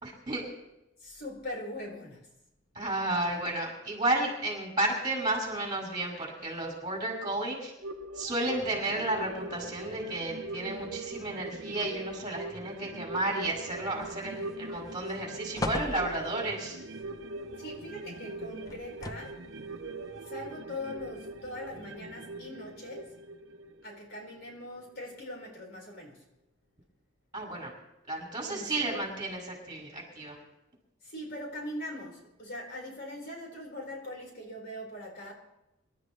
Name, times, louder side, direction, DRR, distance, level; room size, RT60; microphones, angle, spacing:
voice 1, 0.0-0.4 2.7-7.7 8.1-16.8 27.3-27.7 28.1-30.4, right 2 dB, 25° right, -1 dB, 5.8 m, -32 dB
voice 2, 1.0-2.3 17.6-19.4 20.2-23.1 23.8-26.2 28.4-29.0 31.0-35.3, left 1 dB, 55° left, -1 dB, 4.4 m, -41 dB
sound 1, 7.8-24.6 25.0-25.1, right 2 dB, 65° right, 0.8 m, -42 dB
sound 2, 14.0-14.5 14.9-15.1 15.6-16.6 18.7-19.5 20.3-20.4, left 2 dB, 20° left, 0.6 m, -37 dB
26.0 x 12.5 x 3.2 m, 0.91 s
head